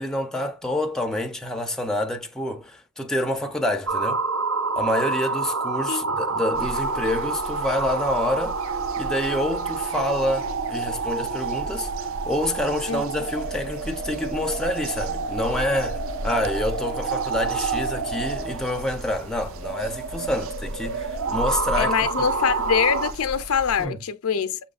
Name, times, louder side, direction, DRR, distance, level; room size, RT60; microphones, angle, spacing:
voice 1, 0.0-4.2 4.8-8.6 9.0-21.9 22.2-22.3 23.8-24.0, left 1 dB, 5° left, 0.6 m, -27 dB
sound 1, 3.9-23.1, right 4 dB, 80° right, 0.9 m, -29 dB
sound 2, 6.5-23.9, right 1 dB, 65° right, 0.5 m, -37 dB
voice 2, 21.8-24.6, left 7 dB, 75° left, 0.5 m, -24 dB
6.3 x 3.0 x 2.4 m
head